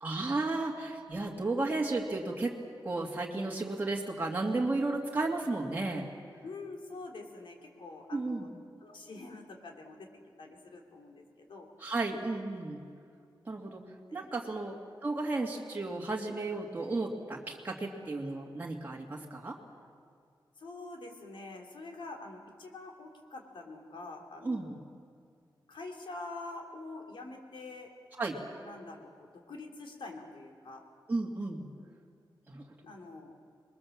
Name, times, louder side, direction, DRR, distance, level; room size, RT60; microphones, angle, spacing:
voice 1, 0.0-6.1 8.1-8.5 11.8-12.8 13.5-13.8 14.1-14.7 15.0-19.6 24.4-24.7 28.2-28.4 31.1-31.7 32.5-32.6, right 2 dB, 20° right, -2 dB, 2.3 m, -33 dB
voice 2, 6.4-8.5 8.8-10.1 10.4-11.7 14.1-14.3 20.6-24.8 25.7-27.9 28.6-30.8 32.8-33.4, left 3 dB, 90° left, 2 dB, 3.3 m, -46 dB
27.0 x 21.5 x 7.4 m, 2.3 s
wide cardioid pair, 165°, 8 cm